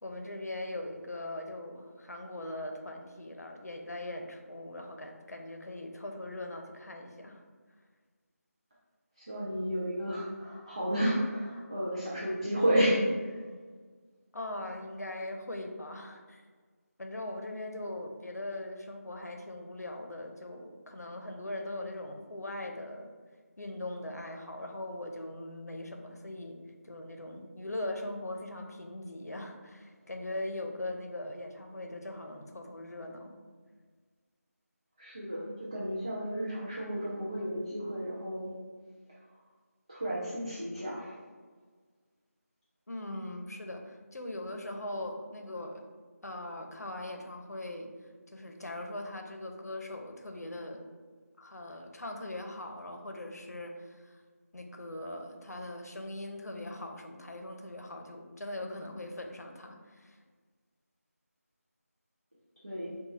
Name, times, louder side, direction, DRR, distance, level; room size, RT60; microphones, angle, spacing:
voice 1, 0.0-7.4 14.3-16.4 17.0-23.1 23.6-33.3 42.9-45.8 46.2-47.9 48.3-50.9 51.4-54.2 54.5-60.2, left 1 dB, 85° left, 3 dB, 0.7 m, -40 dB
voice 2, 9.2-13.4 35.0-38.6 39.9-41.1 62.6-62.9, equal, 20° right, -7 dB, 0.4 m, -32 dB
4.8 x 2.3 x 2.6 m, 1.5 s
figure-of-eight pair, 175°, 8 cm